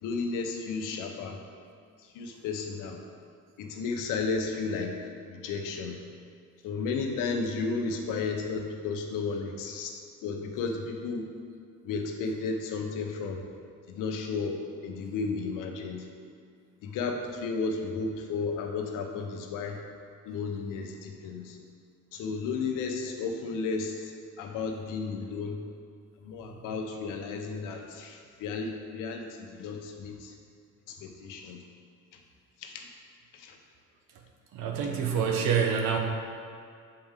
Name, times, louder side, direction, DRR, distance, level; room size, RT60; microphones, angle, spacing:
voice 1, 0.0-1.4 2.0-3.0 3.6-4.9 5.2-6.0 6.6-11.3 11.8-13.4 13.9-14.6 14.8-16.1 16.8-19.8 20.2-21.6 22.1-24.1 24.4-25.6 26.2-30.3 30.9-31.6 32.6-32.9 33.3-33.6 34.8-35.3, left 4 dB, 80° left, 3 dB, 0.8 m, -33 dB
voice 2, 34.5-36.0, right 7 dB, 85° right, 2 dB, 0.9 m, -27 dB
6.9 x 4.5 x 3.6 m, 2.2 s
cardioid pair, 110°, 31 cm